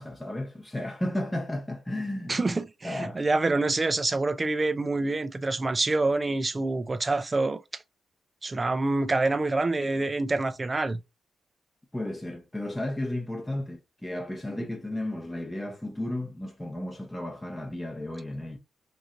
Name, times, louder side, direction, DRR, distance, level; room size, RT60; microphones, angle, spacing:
voice 1, 0.0-2.4 2.8-3.2 11.9-18.6, left 1 dB, 10° left, 0.7 m, -33 dB
voice 2, 2.3-7.6 8.4-11.0 14.6-14.7, right 2 dB, 30° right, 0.4 m, -26 dB
3.1 x 2.6 x 2.5 m
cardioid pair, 75°, 0 cm